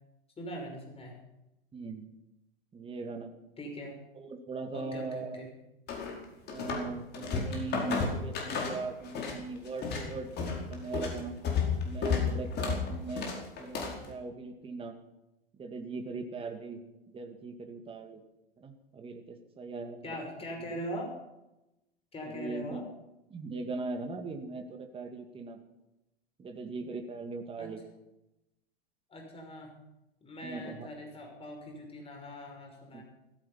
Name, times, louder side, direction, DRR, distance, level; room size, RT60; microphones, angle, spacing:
voice 1, 0.4-1.2 3.6-4.0 4.7-5.5 20.0-21.1 22.1-22.8 27.6-27.8 29.1-29.7 30.2-33.0, equal, 20° left, 2 dB, 5.9 m, -41 dB
voice 2, 1.7-2.1 2.7-3.3 4.2-5.4 6.5-11.3 11.8-13.3 13.6-14.9 15.6-16.8 17.1-18.2 18.6-20.0 22.3-22.8 23.3-25.6 26.4-27.8 30.4-30.9 32.9-33.0, right 3 dB, 20° right, 5 dB, 2.1 m, -39 dB
sound 1, 5.9-6.9 7.1-9.4 9.7-14.1, left 5 dB, 35° left, 4.9 m, -32 dB
16.0 x 14.0 x 5.7 m, 0.92 s
hypercardioid pair, 95°, 29 cm